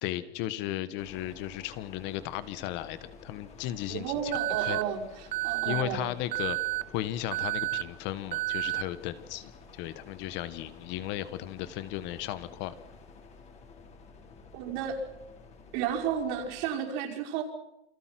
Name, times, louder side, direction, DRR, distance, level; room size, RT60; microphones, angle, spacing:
voice 1, 0.0-4.8 5.6-6.6 6.9-12.7, left 13 dB, 35° left, 14 dB, 1.4 m, -35 dB
sound 1, 1.0-16.7, left 4 dB, 20° left, 4.7 m, -52 dB
voice 2, 3.9-6.1 14.5-15.0 15.7-17.4, right 8 dB, 45° right, 2 dB, 5.5 m, -32 dB
Alarm, 4.3-4.8 5.3-5.8 6.3-6.8 7.3-7.8 8.3-8.8, right 19 dB, 25° right, 1.0 m, -30 dB
29.0 x 22.0 x 6.0 m, 0.85 s
supercardioid pair, 150°, 31 cm